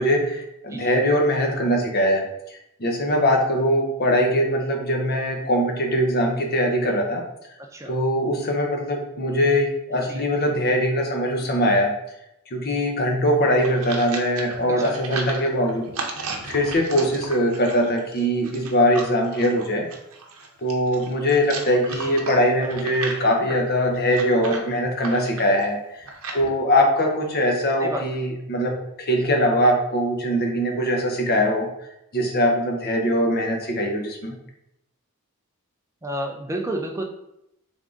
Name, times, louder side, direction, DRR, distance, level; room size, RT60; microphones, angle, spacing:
voice 1, 0.0-7.2 7.9-11.9 12.5-15.8 16.2-19.9 20.6-31.7 32.1-34.3, equal, 45° left, 2 dB, 0.8 m, -22 dB
sound 1, 13.3-26.5, right 4 dB, 70° right, 0.7 m, -35 dB
voice 2, 14.8-15.2 22.0-22.2 27.8-28.0 36.0-37.0, right 1 dB, 15° right, 3 dB, 0.4 m, -31 dB
3.6 x 3.5 x 3.8 m, 0.83 s
head